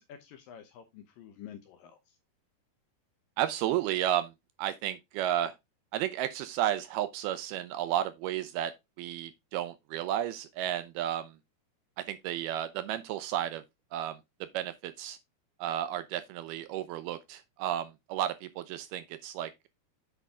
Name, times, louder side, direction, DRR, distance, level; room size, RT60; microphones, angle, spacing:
voice 1, 0.0-2.2, left 9 dB, 75° left, 2.2 m, -49 dB
voice 2, 3.4-4.3 4.6-5.5 5.9-8.7 9.0-11.3 12.0-13.6 13.9-14.2 14.5-15.2 15.6-19.7, right 12 dB, 80° right, 2.3 m, -32 dB
8.3 x 5.5 x 3.6 m
omnidirectional pair, 4.8 m